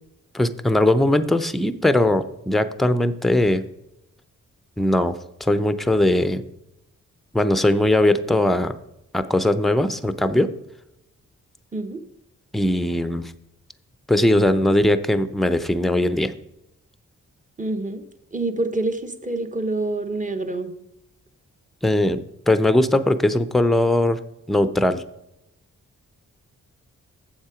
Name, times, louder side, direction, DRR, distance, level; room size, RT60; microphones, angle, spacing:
voice 1, 0.3-3.6 4.8-6.4 7.3-8.8 9.1-10.5 12.5-13.3 14.1-16.3 21.8-22.2 22.5-24.2 24.5-25.0, left 1 dB, ahead, 12 dB, 0.5 m, -20 dB
voice 2, 17.6-18.0 18.3-20.7, right 2 dB, 25° right, 7 dB, 1.0 m, -26 dB
7.5 x 7.3 x 4.9 m, 0.85 s
cardioid pair, 75°, 31 cm